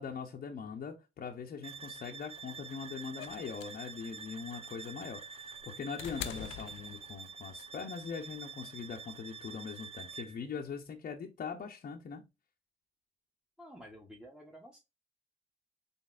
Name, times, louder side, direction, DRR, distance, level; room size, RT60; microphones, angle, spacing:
voice 1, 0.0-12.3, left 6 dB, 45° left, 0.6 m, -42 dB
sound 1, 1.6-10.4, right 5 dB, 30° right, 0.4 m, -47 dB
sound 2, 3.2-7.5 8.7-8.8, left 10 dB, 80° left, 0.4 m, -45 dB
voice 2, 13.6-14.8, equal, 5° right, 0.9 m, -51 dB
4.0 x 3.4 x 2.4 m
cardioid pair, 90°, 20 cm